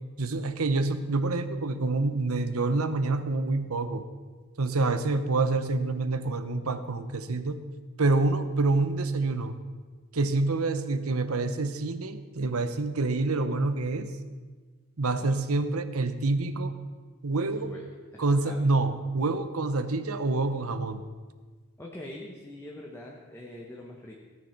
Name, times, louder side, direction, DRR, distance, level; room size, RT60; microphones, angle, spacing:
voice 1, 0.2-4.0 4.6-7.6 8.0-9.5 10.1-14.1 15.0-16.7 17.2-17.6 18.2-21.0, right 3 dB, 85° right, 11 dB, 1.0 m, -27 dB
voice 2, 17.5-17.9 18.1-18.6 21.8-24.2, left 1 dB, 10° left, -2 dB, 1.2 m, -43 dB
17.0 x 9.3 x 6.0 m, 1.4 s
head